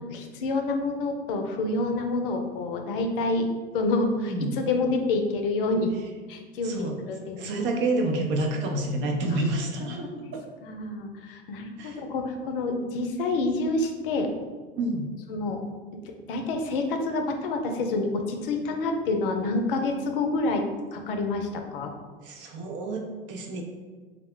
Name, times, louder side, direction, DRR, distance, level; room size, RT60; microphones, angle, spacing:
voice 1, 0.0-3.5 3.7-5.9 6.3-7.7 9.3-9.4 10.2-10.3 10.6-14.3 15.3-15.6 15.9-20.6 20.9-21.9, left 2 dB, 65° left, 4 dB, 0.5 m, -28 dB
voice 2, 4.1-4.6 6.6-7.0 7.4-10.4 11.8-12.0 14.8-15.2 22.2-23.6, right 2 dB, 40° right, 2 dB, 0.5 m, -29 dB
2.3 x 2.1 x 3.5 m, 1.4 s
hypercardioid pair, 80°, 29 cm